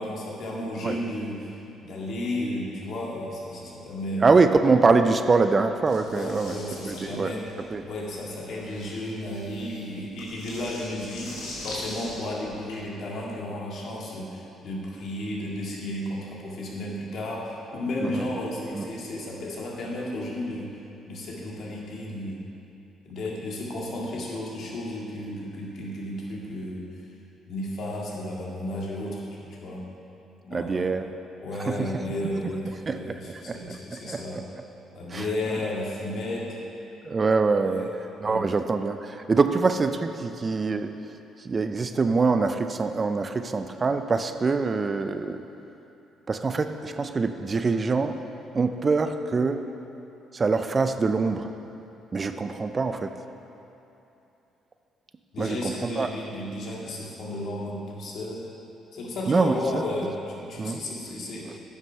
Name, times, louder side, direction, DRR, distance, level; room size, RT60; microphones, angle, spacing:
voice 1, 0.0-1.5 1.8-4.3 6.1-7.5 7.9-20.8 21.1-22.4 23.0-27.1 27.5-29.2 29.5-29.9 30.4-30.9 31.4-34.4 34.9-36.6 37.5-37.9 38.2-38.5 55.3-58.5 58.9-61.6, left 1 dB, 65° left, -3 dB, 2.0 m, -33 dB
voice 2, 4.2-6.6 6.9-7.3 7.7-7.8 18.0-18.3 18.7-18.9 30.5-31.1 31.6-31.9 32.9-33.7 34.0-34.2 35.1-35.2 37.1-37.9 38.2-40.9 41.4-45.4 46.3-48.2 48.5-49.6 50.3-51.5 52.1-53.1 55.4-56.1 59.3-59.5 60.6-60.8, right 4 dB, 35° right, 8 dB, 0.5 m, -24 dB
sound 1, 5.9-12.7, left 1 dB, 85° left, 2.4 m, -42 dB
9.5 x 6.1 x 5.7 m, 2.9 s
cardioid pair, 80°, 0 cm